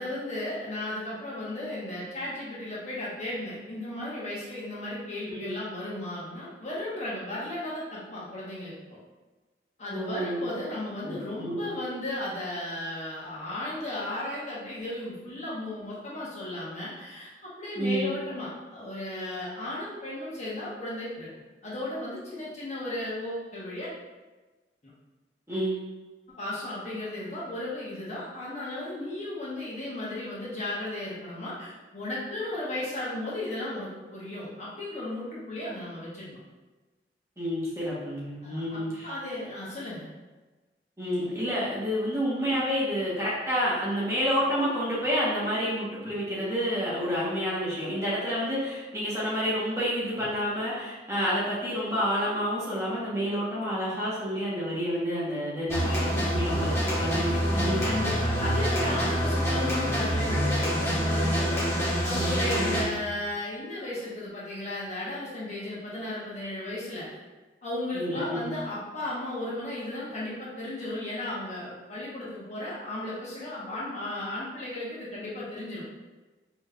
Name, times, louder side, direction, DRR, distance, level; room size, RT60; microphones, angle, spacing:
voice 1, 0.0-9.0 9.8-21.3 21.6-23.9 24.8-24.9 26.4-36.4 38.4-40.1 57.8-67.2 67.6-75.8, left 1 dB, 40° left, -7 dB, 1.1 m, -35 dB
voice 2, 5.2-5.6 9.9-10.4 11.0-11.7 17.7-18.1 25.5-25.8 37.4-39.1 41.0-57.8 62.6-62.9 67.9-68.6, equal, 15° right, -8 dB, 1.1 m, -29 dB
sound 1, 55.7-62.8, equal, 15° left, 1.0 m, -26 dB
5.1 x 3.0 x 2.4 m, 1.2 s
head